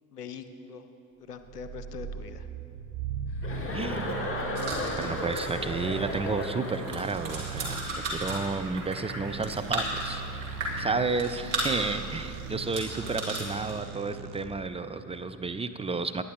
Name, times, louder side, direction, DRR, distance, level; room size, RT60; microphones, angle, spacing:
voice 1, 0.1-0.9 1.2-2.5, left 5 dB, 90° left, 9 dB, 0.7 m, -42 dB
sound 1, 1.4-14.7, right 6 dB, 50° right, 0.7 m, -39 dB
Chuckle chortle, 3.4-7.2, left 2 dB, 30° left, 2.4 m, -34 dB
voice 2, 3.7-4.2 4.9-10.2 10.8-16.2, right 3 dB, 15° right, 8 dB, 0.5 m, -32 dB
sound 2, 4.5-13.8, right 1 dB, 70° right, 3.2 m, -36 dB
19.5 x 11.0 x 3.8 m, 2.8 s
figure-of-eight pair, 55°, 45 cm